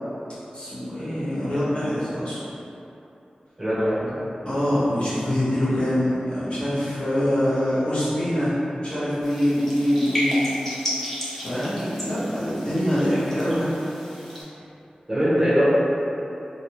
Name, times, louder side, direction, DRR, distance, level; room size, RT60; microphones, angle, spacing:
voice 1, 0.5-2.4 4.4-8.6 8.8-10.4 11.4-13.7, equal, 40° left, -12 dB, 1.3 m, -24 dB
voice 2, 3.6-4.2 15.1-15.6, equal, 15° right, -12 dB, 0.8 m, -22 dB
sound 1, 9.2-14.4, equal, 10° left, 0.8 m, -33 dB
3.2 x 2.6 x 2.9 m, 2.9 s
wide cardioid pair, 85°, 3 cm